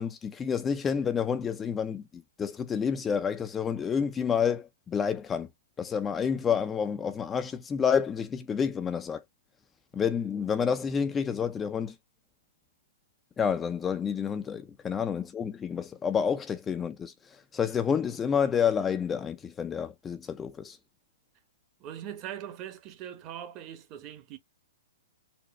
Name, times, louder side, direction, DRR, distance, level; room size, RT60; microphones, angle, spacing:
voice 1, 0.0-2.0 2.4-5.5 5.8-9.2 9.9-11.9 13.4-17.1 17.5-20.8, left 7 dB, 20° left, 0.4 m, -29 dB
voice 2, 21.8-24.4, right 10 dB, 35° right, 0.9 m, -41 dB
4.2 x 2.1 x 2.9 m
hypercardioid pair, 120°, 0 cm